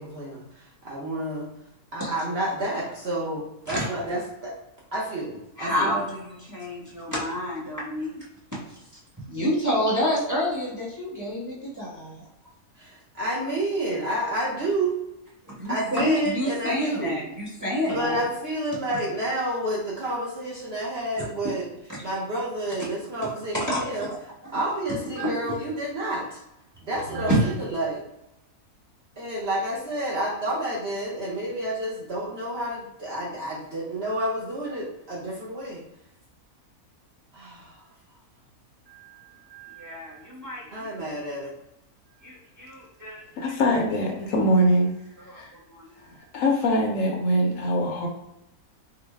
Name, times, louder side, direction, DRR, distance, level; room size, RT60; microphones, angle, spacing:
voice 1, 0.0-1.5 1.9-4.6 4.9-6.0 12.8-15.0 15.7-17.2 17.9-21.7 22.0-24.1 24.5-26.4 26.8-28.0 29.2-35.8 37.3-37.9 40.7-41.5, right 1 dB, 55° right, -4 dB, 0.8 m, -30 dB
voice 2, 5.6-8.2 8.7-9.0 9.3-12.2 15.4-18.2 23.5-24.1 25.2-25.3 27.1-27.5 38.9-39.2 39.5-40.9 42.2-43.6 45.2-46.0, equal, 15° right, -7 dB, 0.9 m, -28 dB
voice 3, 43.4-44.9 45.4-45.5 46.3-48.1, equal, 70° left, 1 dB, 0.9 m, -22 dB
3.8 x 2.0 x 3.3 m, 0.89 s
omnidirectional pair, 1.6 m